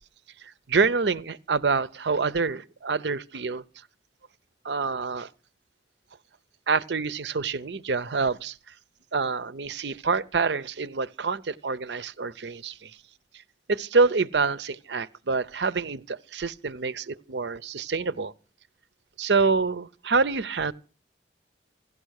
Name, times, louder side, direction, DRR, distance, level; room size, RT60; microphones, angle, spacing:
voice 1, 0.4-3.6 4.6-5.3 6.7-8.6 9.1-13.0 13.7-18.3 19.2-20.7, right 4 dB, 80° right, 0.7 m, -26 dB
16.5 x 12.5 x 6.5 m
head